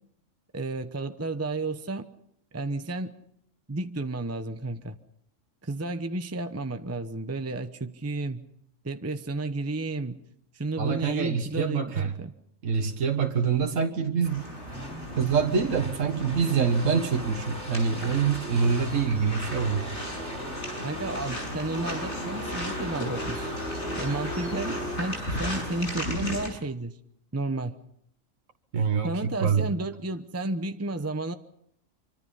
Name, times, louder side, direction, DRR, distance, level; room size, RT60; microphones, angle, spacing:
voice 1, 0.5-2.0 2.5-3.1 3.7-5.0 5.6-8.4 8.8-10.2 10.5-12.3 20.8-23.5 24.0-27.0 27.3-27.8 29.0-31.3, right 2 dB, 15° right, 9 dB, 0.8 m, -32 dB
voice 2, 10.8-12.1 12.6-14.5 15.1-19.9 28.7-29.7, right 6 dB, 75° right, 4 dB, 1.7 m, -25 dB
sound 1, 14.2-26.5, equal, 60° left, 7.0 m, -36 dB
sound 2, 14.7-25.0, equal, 50° right, 3.6 m, -38 dB
26.0 x 24.5 x 5.6 m, 0.72 s
omnidirectional pair, 1.4 m